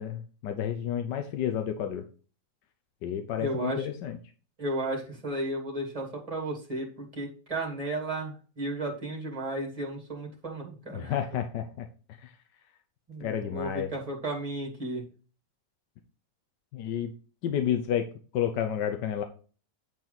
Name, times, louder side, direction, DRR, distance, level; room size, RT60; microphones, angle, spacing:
voice 1, 0.0-2.0 3.0-4.2 10.9-11.9 12.2-12.3 13.2-13.9 16.7-17.1 17.4-18.1 18.3-19.2, left 9 dB, 80° left, 6 dB, 1.4 m, -30 dB
voice 2, 3.4-3.9 4.6-11.1 13.1-15.0, right 1 dB, 20° right, -1 dB, 2.4 m, -34 dB
9.2 x 4.5 x 4.0 m, 0.38 s
omnidirectional pair, 1.9 m